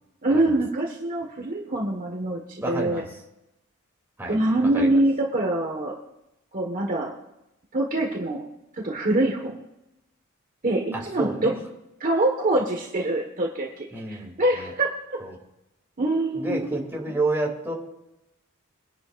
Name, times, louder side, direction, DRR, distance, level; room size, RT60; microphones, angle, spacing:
voice 1, 0.2-3.0 4.3-5.9 6.5-7.1 7.7-8.4 8.7-9.6 10.6-11.5 12.0-15.2 16.0-16.8, right 1 dB, 40° right, 0 dB, 1.6 m, -24 dB
voice 2, 2.6-3.0 4.2-4.3 4.7-4.9 10.9-11.5 13.9-14.3 15.2-15.3 16.3-17.7, right 2 dB, 10° right, -2 dB, 3.0 m, -29 dB
23.5 x 11.0 x 2.6 m, 0.89 s
head